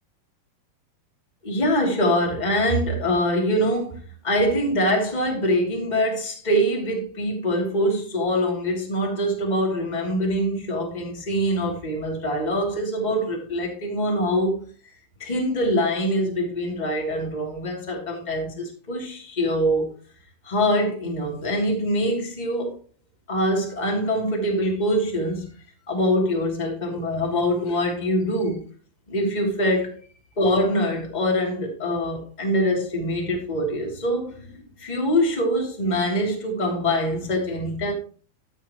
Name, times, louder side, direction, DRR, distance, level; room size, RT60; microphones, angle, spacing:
voice 1, 1.4-14.5 15.2-19.9 20.4-22.7 23.3-25.5 25.9-28.6 29.1-29.9 30.3-37.9, equal, 15° left, 1.4 m, -24 dB
13.0 x 8.6 x 3.0 m
omnidirectional pair, 6.0 m